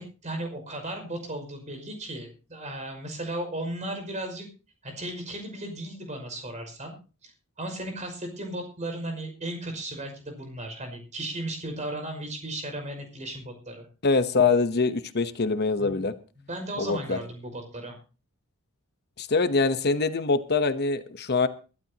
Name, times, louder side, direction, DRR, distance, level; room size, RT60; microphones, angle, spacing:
voice 1, 0.0-4.5 4.8-6.9 7.2-7.3 7.6-13.9 15.8-16.0 16.4-18.0, right 1 dB, 35° right, 4 dB, 5.7 m, -35 dB
voice 2, 14.0-16.1 16.8-17.2 19.2-21.5, left 4 dB, 50° left, 11 dB, 1.0 m, -24 dB
23.5 x 12.5 x 2.9 m, 0.35 s
head